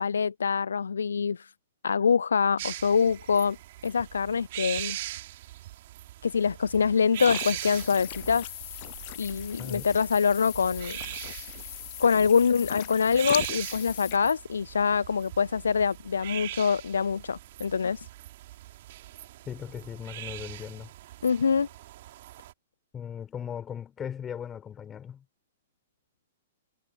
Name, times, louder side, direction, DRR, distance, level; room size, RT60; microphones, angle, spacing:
voice 1, 0.0-1.5 1.8-3.6 3.8-5.0 6.2-8.5 9.2-11.0 12.0-18.1 21.2-21.7, left 6 dB, 75° left, 0.5 m, -25 dB
sound 1, 2.6-22.5, right 15 dB, 55° right, 3.2 m, -41 dB
sound 2, 7.2-14.2, left 21 dB, 45° left, 0.9 m, -39 dB
voice 2, 19.5-20.9 22.9-25.2, left 8 dB, 20° left, 5.4 m, -38 dB
figure-of-eight pair, 115°, 0 cm